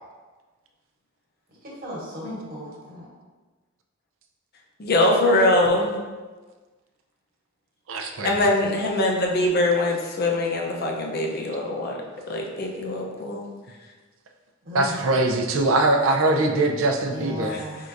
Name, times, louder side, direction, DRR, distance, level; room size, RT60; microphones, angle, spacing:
voice 1, 1.6-3.1 14.6-15.0 17.0-17.8, equal, 45° right, -6 dB, 1.3 m, -35 dB
voice 2, 4.8-6.0 8.2-12.0 12.3-13.4 17.5-17.6, left 1 dB, 50° left, 0 dB, 0.6 m, -22 dB
voice 3, 7.9-8.4 14.7-17.5, right 2 dB, 75° right, 3 dB, 0.5 m, -22 dB
4.5 x 3.7 x 2.6 m, 1.3 s
head